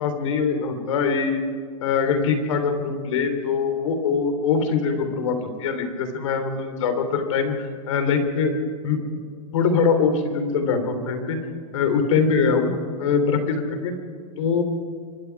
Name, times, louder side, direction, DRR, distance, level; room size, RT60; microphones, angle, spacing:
voice 1, 0.0-1.4 1.8-8.5 8.8-9.0 9.5-11.4 11.7-12.7 13.0-13.9 14.4-14.6, left 5 dB, 60° left, 7 dB, 3.5 m, -23 dB
24.5 x 22.0 x 4.8 m, 2.1 s
supercardioid pair, 175°, 18 cm